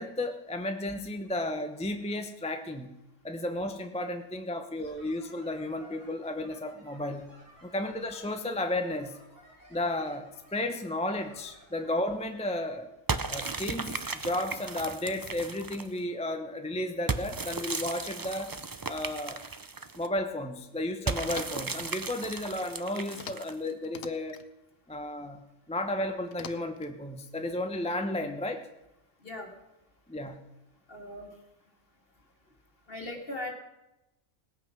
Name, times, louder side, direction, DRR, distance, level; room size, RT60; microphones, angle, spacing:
voice 1, 0.0-2.9 3.2-7.3 7.6-9.2 9.7-12.9 13.3-18.5 18.9-19.4 19.9-24.4 24.9-25.4 25.7-28.7 30.1-30.4, left 1 dB, 5° left, 5 dB, 0.7 m, -33 dB
sound 1, 4.8-12.7, left 1 dB, 70° right, 5.8 m, -57 dB
sound 2, 13.1-16.0 17.1-20.1 21.1-23.7, right 4 dB, 35° right, 0.3 m, -35 dB
sound 3, 21.2-21.8 23.1-23.6 23.8-24.5 26.3-26.9, left 8 dB, 80° left, 1.2 m, -44 dB
voice 2, 30.9-31.3 32.9-33.5, left 1 dB, 45° left, 1 dB, 2.7 m, -38 dB
18.5 x 8.9 x 6.0 m, 0.94 s
omnidirectional pair, 1.3 m